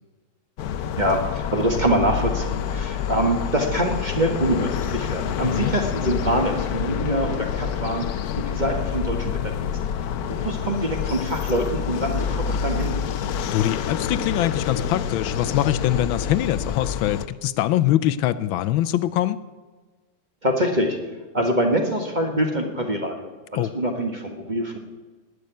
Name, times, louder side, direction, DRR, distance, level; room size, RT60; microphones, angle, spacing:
sound 1, 0.6-17.3, left 8 dB, 65° left, 1.0 m, -27 dB
voice 1, 1.0-8.1 8.4-9.7 10.2-13.0 20.4-21.0 21.3-24.8, right 1 dB, 25° right, 2 dB, 1.4 m, -25 dB
voice 2, 13.5-19.4 23.5-23.7, left 13 dB, 85° left, 13 dB, 1.4 m, -23 dB
19.0 x 6.7 x 9.2 m, 1.3 s
omnidirectional pair, 2.1 m